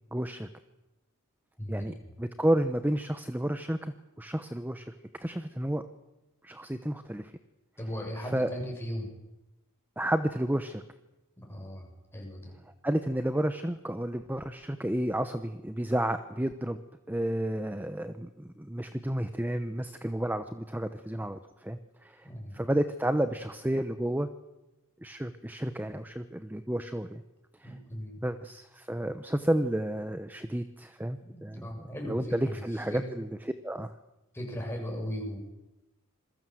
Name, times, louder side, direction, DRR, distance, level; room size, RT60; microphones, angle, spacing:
voice 1, 0.1-0.5 1.7-4.8 5.2-5.8 6.4-7.3 8.3-8.5 10.0-10.8 12.8-16.8 17.1-22.3 22.5-24.3 25.0-27.2 27.6-27.7 28.2-31.7 32.0-33.9, right 1 dB, 10° right, 10 dB, 0.9 m, -31 dB
voice 2, 1.6-1.9 7.8-9.1 11.4-12.5 22.2-22.6 27.6-28.2 31.2-32.6 32.9-33.0 34.3-35.4, equal, 10° left, 1 dB, 7.3 m, -37 dB
27.0 x 22.0 x 7.8 m, 0.99 s
head